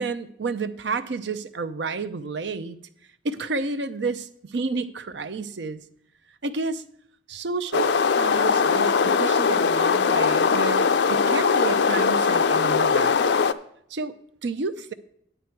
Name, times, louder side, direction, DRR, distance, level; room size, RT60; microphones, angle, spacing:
voice 1, 0.0-2.8 3.2-5.8 6.4-6.8 7.3-13.2 13.9-14.2 14.4-14.9, right 3 dB, 70° right, 10 dB, 0.6 m, -30 dB
sound 1, 7.7-13.5, left 5 dB, 70° left, 0.4 m, -21 dB
9.3 x 8.9 x 4.5 m, 0.69 s
head